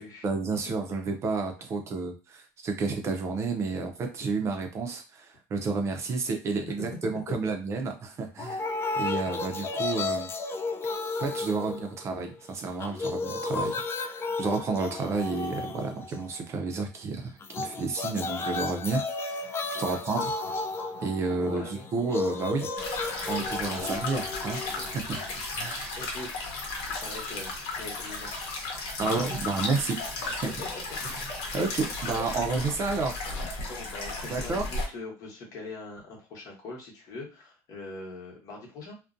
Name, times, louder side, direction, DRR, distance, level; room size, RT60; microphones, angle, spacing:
voice 1, 0.2-10.3 11.2-20.3 21.0-21.6 21.9-22.7 23.3-25.2 25.6-26.0 29.0-30.5 31.5-33.2 34.3-34.6, right 4 dB, 40° right, 4 dB, 0.5 m, -31 dB
sound 1, 8.4-12.4 12.7-16.4 17.4-25.4, left 3 dB, 35° left, 0.3 m, -33 dB
voice 2, 21.2-21.8 23.5-24.0 25.2-25.3 26.0-28.4 30.4-30.8 31.4-31.5 33.7-39.0, left 2 dB, 50° left, -1 dB, 1.0 m, -42 dB
sound 2, 22.8-34.9, left 3 dB, 75° left, 0.9 m, -35 dB
2.4 x 2.1 x 2.5 m, 0.32 s
supercardioid pair, 110°, 8 cm